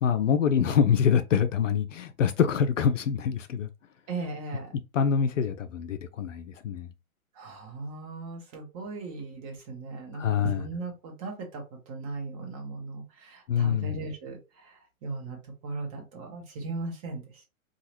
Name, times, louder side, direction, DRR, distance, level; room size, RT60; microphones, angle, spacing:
voice 1, 0.0-3.7 4.9-6.9 10.1-10.6 13.5-14.0, left 7 dB, 60° left, 0.5 m, -25 dB
voice 2, 4.1-4.7 7.3-15.4 15.6-17.4, right 3 dB, 20° right, 0.8 m, -37 dB
2.8 x 2.3 x 3.0 m
figure-of-eight pair, 115°, 43 cm